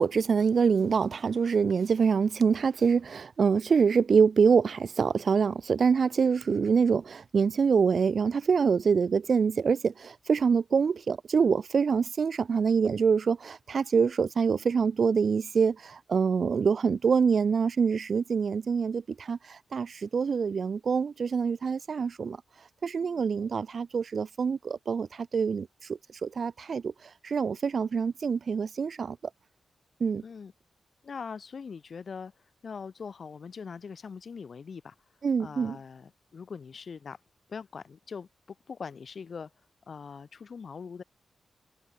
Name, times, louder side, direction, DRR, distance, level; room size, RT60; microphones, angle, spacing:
voice 1, 0.0-22.4 22.8-25.7 26.2-26.9 27.2-29.2 30.0-30.2 35.2-35.8, right 6 dB, 65° right, 2.9 m, -25 dB
voice 2, 31.0-32.3 32.6-34.9 35.4-37.2 37.5-39.5 39.9-41.0, left 5 dB, 65° left, 6.8 m, -42 dB
cardioid pair, 50°, 0 cm